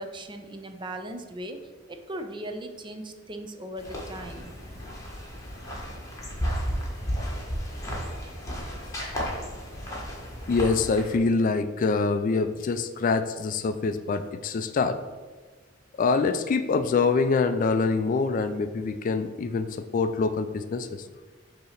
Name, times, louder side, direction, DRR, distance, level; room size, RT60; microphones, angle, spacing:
voice 1, 0.0-1.6 1.9-4.5, right 1 dB, 25° right, 6 dB, 0.5 m, -38 dB
sound 1, 3.8-11.2, equal, 15° left, 1.4 m, -33 dB
voice 2, 10.5-15.0 16.0-21.0, left 4 dB, 45° left, 10 dB, 0.3 m, -25 dB
6.6 x 2.9 x 5.7 m, 1.4 s
head